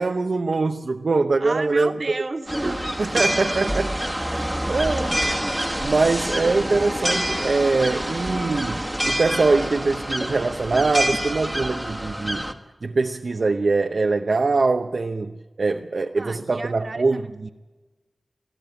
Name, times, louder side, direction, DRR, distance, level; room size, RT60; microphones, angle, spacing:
voice 1, 0.0-2.0 3.0-4.0 4.3-5.1 5.8-12.5 12.8-17.5, right 3 dB, 70° right, 0.8 m, -23 dB
voice 2, 1.4-2.8 3.2-3.4 16.2-17.5, right 3 dB, 55° right, 1.6 m, -33 dB
sound 1, 2.5-12.5, equal, 5° right, 1.7 m, -26 dB
22.0 x 14.5 x 9.1 m
wide cardioid pair, 60°, 0 cm